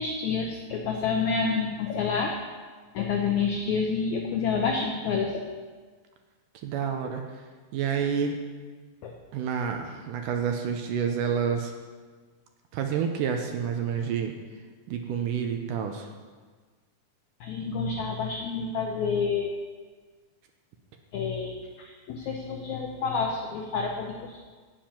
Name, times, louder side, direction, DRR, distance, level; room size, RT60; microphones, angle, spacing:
voice 1, 0.0-2.3 2.9-5.5 9.0-9.1 17.4-19.5 21.1-21.5 21.8-24.4, left 5 dB, 85° left, 1 dB, 1.6 m, -28 dB
voice 2, 6.5-7.4 7.7-8.4 9.3-11.7 12.7-14.4 14.9-16.1, right 7 dB, 80° right, 4 dB, 2.0 m, -29 dB
8.9 x 7.6 x 5.8 m, 1.5 s
omnidirectional pair, 4.2 m